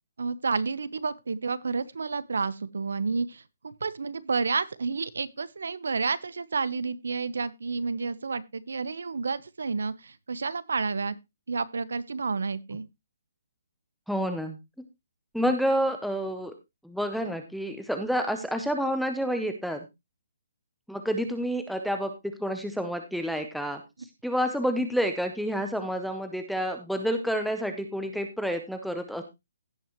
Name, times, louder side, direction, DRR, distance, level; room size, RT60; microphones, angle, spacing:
voice 1, 0.2-11.1 11.5-12.8, right 4 dB, 80° right, 0.9 m, -30 dB
voice 2, 14.1-14.6 15.3-16.5 16.8-19.8 20.9-23.8 24.2-29.2, equal, ahead, 0.6 m, -29 dB
16.5 x 6.0 x 3.0 m
hypercardioid pair, 180°, 0 cm